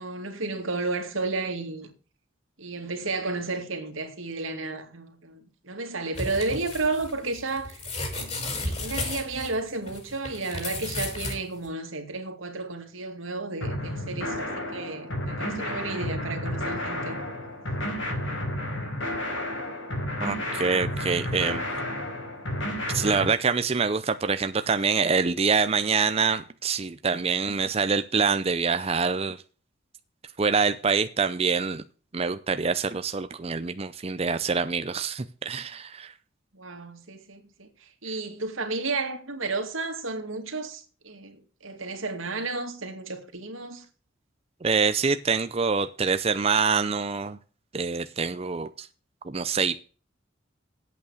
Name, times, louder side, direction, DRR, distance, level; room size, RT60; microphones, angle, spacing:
voice 1, 0.0-1.9 2.6-7.8 8.1-17.2 36.5-43.8, right 3 dB, 90° right, 2.3 m, -32 dB
sound 1, 6.1-11.4 11.7-11.8, left 2 dB, 35° left, 5.8 m, -34 dB
sound 2, 13.6-23.3, left 1 dB, 75° left, 4.4 m, -31 dB
voice 2, 20.2-21.6 22.9-29.4 30.4-31.8 32.1-36.1 44.6-47.4 47.7-48.9 49.2-49.8, right 5 dB, 30° right, 0.5 m, -25 dB
9.3 x 8.4 x 6.4 m
head